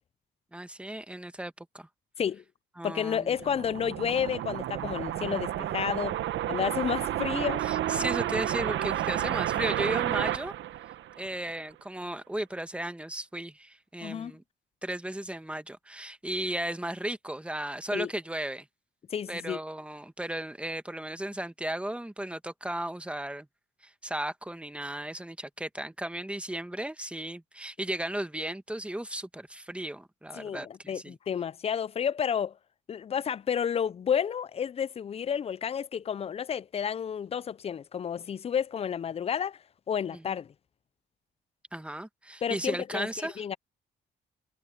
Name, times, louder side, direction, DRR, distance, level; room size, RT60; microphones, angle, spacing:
voice 1, 0.5-1.9 2.8-3.5 7.6-10.5 11.2-14.4 14.8-18.6 19.3-23.5 23.8-31.2 40.1-40.2 41.7-43.4, right 1 dB, 5° right, 1.5 m, -35 dB
voice 2, 2.8-6.2 6.5-7.6 8.0-8.1 14.0-14.3 17.9-18.1 19.1-19.6 30.4-32.5 32.9-39.6 39.9-40.5 42.4-43.6, left 8 dB, 30° left, 0.4 m, -31 dB
sound 1, 3.2-11.5, right 12 dB, 75° right, 0.9 m, -31 dB
cardioid pair, 90°, 20 cm